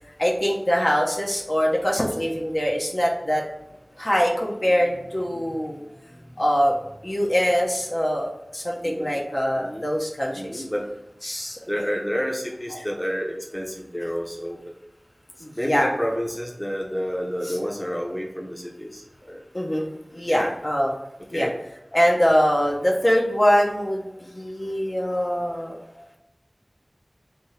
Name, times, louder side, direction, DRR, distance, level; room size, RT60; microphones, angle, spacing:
voice 1, 0.2-3.4 4.0-5.8 6.4-6.8 7.0-10.6 11.2-11.6 15.4-15.9 17.4-17.6 19.5-20.9 21.3-21.5 21.9-25.8, equal, 55° left, -2 dB, 0.9 m, -23 dB
voice 2, 4.7-5.7 5.9-6.3 8.8-9.2 9.5-9.9 10.3-10.9 11.7-14.6 15.5-19.4 20.3-20.5 21.3-21.5 21.9-22.4 25.9-26.2, equal, 15° left, -1 dB, 0.8 m, -30 dB
3.6 x 2.7 x 4.4 m, 0.87 s
wide cardioid pair, 45°, 0 cm